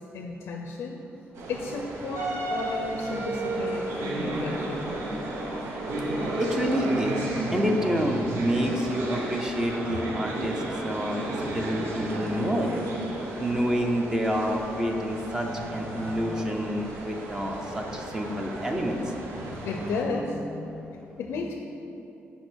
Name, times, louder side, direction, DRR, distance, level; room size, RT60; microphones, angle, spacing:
voice 1, 0.1-1.0 1.5-4.9 19.6-21.5, left 3 dB, 85° left, 1 dB, 0.6 m, -33 dB
sound 1, 1.4-20.0, right 2 dB, 90° right, 1.0 m, -33 dB
voice 2, 6.4-7.2 7.5-12.7 13.4-19.0, equal, 15° right, 2 dB, 0.6 m, -28 dB
6.9 x 4.8 x 6.2 m, 2.9 s
cardioid pair, 160°, 4 cm